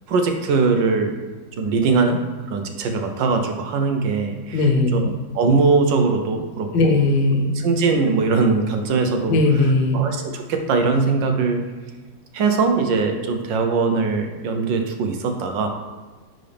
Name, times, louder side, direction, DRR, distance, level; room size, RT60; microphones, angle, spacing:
voice 1, 0.1-1.1 1.6-2.2 2.5-4.7 4.9-5.1 5.3-6.9 7.5-9.4 9.9-11.6 12.3-15.7, right 4 dB, 75° right, 5 dB, 1.5 m, -21 dB
voice 2, 4.5-5.0 6.7-7.5 9.3-10.0, left 2 dB, 85° left, 2 dB, 1.7 m, -18 dB
9.7 x 3.9 x 3.4 m, 1.3 s
omnidirectional pair, 2.1 m